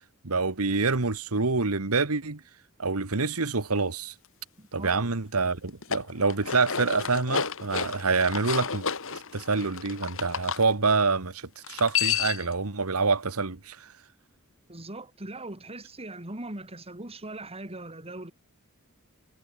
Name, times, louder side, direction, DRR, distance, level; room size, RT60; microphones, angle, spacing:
voice 1, 0.2-2.4 2.8-4.1 4.7-13.9, right 4 dB, 85° right, 1.6 m, -27 dB
voice 2, 4.6-5.1 14.7-18.3, right 2 dB, 30° right, 3.3 m, -40 dB
sound 1, 5.7-10.6 11.6-12.5, left 7 dB, 65° left, 2.9 m, -31 dB
head